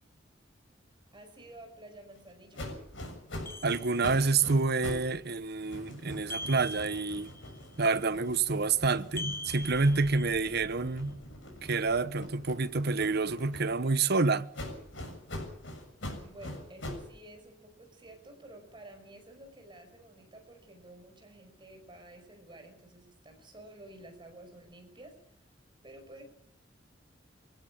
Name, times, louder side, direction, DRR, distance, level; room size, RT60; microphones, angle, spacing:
voice 1, 1.1-2.7 16.2-25.4 25.8-26.2, right 1 dB, 25° right, 5.5 m, -51 dB
sound 1, 2.5-5.1 5.4-10.2 10.6-14.0 14.5-17.1, left 1 dB, 80° left, 7.1 m, -43 dB
sound 2, 3.4-4.5 6.3-7.6 9.2-10.7, left 1 dB, 15° left, 1.0 m, -42 dB
voice 2, 3.6-7.3 7.8-11.2 11.6-14.5, right 4 dB, 60° right, 1.0 m, -28 dB
Explosion, 9.6-15.0, equal, 40° left, 7.5 m, -53 dB
24.5 x 16.5 x 8.6 m
head